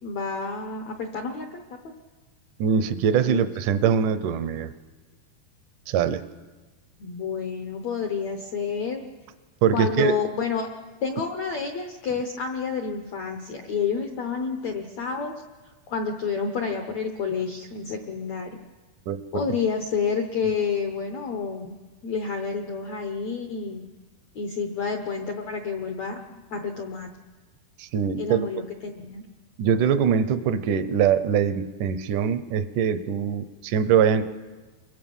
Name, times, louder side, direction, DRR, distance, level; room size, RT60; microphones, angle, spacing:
voice 1, 0.0-1.9 3.3-3.4 7.0-9.0 9.7-10.7 11.0-15.3 15.9-18.6 19.3-23.8 24.3-27.1 28.2-29.2, left 5 dB, 85° left, 4 dB, 1.5 m, -29 dB
voice 2, 2.6-4.7 5.9-6.2 9.6-10.2 19.1-19.4 27.8-28.5 29.6-34.2, right 7 dB, 80° right, 11 dB, 1.8 m, -23 dB
29.0 x 23.5 x 5.5 m, 1.3 s
omnidirectional pair, 4.7 m